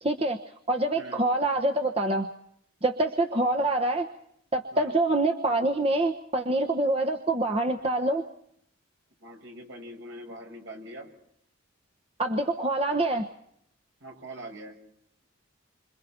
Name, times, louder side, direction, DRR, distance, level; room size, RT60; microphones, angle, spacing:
voice 1, 0.0-0.4 0.7-2.3 2.8-4.1 4.5-8.2 12.2-13.3, right 2 dB, 30° right, 4 dB, 1.1 m, -25 dB
voice 2, 9.2-11.1 14.0-14.8, right 1 dB, 65° right, 2 dB, 6.9 m, -43 dB
28.5 x 26.5 x 4.5 m, 0.71 s
head